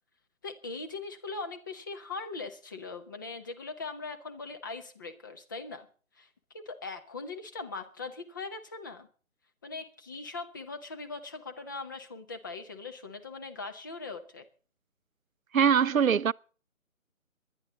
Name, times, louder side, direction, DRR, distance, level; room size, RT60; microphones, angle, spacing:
voice 1, 0.4-5.9 6.2-6.3 6.5-9.1 9.6-14.4, left 3 dB, 15° left, 0.9 m, -40 dB
voice 2, 15.5-16.3, right 7 dB, 75° right, 0.6 m, -22 dB
24.0 x 11.0 x 4.0 m
figure-of-eight pair, 150°, 41 cm